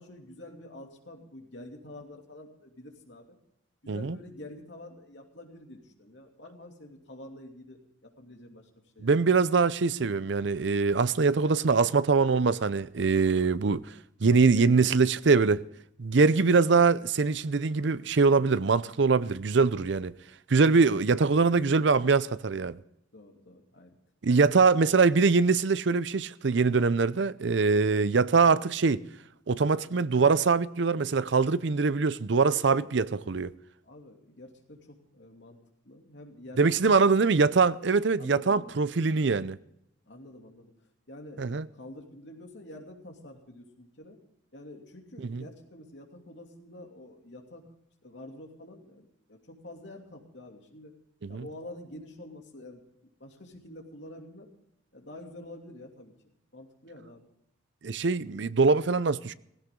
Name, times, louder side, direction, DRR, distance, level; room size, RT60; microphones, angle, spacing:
voice 1, 0.0-3.4 3.8-8.7 8.9-9.1 14.4-14.9 23.1-24.0 24.2-24.8 32.7-33.0 33.8-35.6 35.8-37.1 38.2-38.8 40.0-40.7 41.1-44.2 44.5-47.7 48.0-50.9 51.3-54.5 54.9-57.3, left 1 dB, 60° left, 2.8 m, -47 dB
voice 2, 9.0-13.8 14.2-15.6 16.0-20.1 20.5-22.8 24.2-29.0 29.5-33.5 36.6-39.6 41.4-41.7 45.2-45.4 51.2-51.4 57.8-59.3, right 4 dB, 65° right, 0.6 m, -23 dB
16.5 x 16.5 x 3.8 m
head